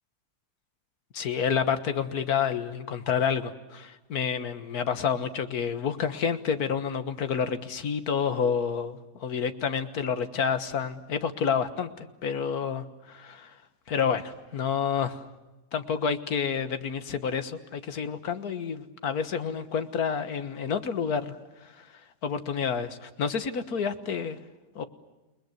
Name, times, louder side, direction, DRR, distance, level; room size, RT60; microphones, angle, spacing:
voice 1, 1.1-13.6 13.9-15.2 15.7-21.9 22.2-24.4 24.8-24.9, left 6 dB, 65° left, 10 dB, 1.8 m, -29 dB
29.5 x 20.5 x 8.0 m, 1.1 s
omnidirectional pair, 1.8 m